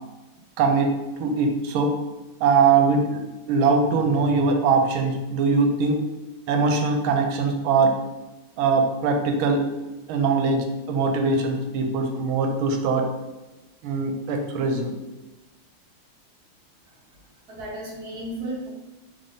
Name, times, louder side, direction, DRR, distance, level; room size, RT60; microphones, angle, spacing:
voice 1, 0.6-0.9 1.2-1.9 2.4-3.2 3.5-6.0 6.5-7.9 8.6-9.6 10.1-13.0 13.8-14.9, right 4 dB, 85° right, 4 dB, 1.4 m, -21 dB
voice 2, 16.9-17.2 17.5-18.7, right 1 dB, 65° right, -3 dB, 1.0 m, -34 dB
3.6 x 3.3 x 2.6 m, 1.1 s
omnidirectional pair, 2.3 m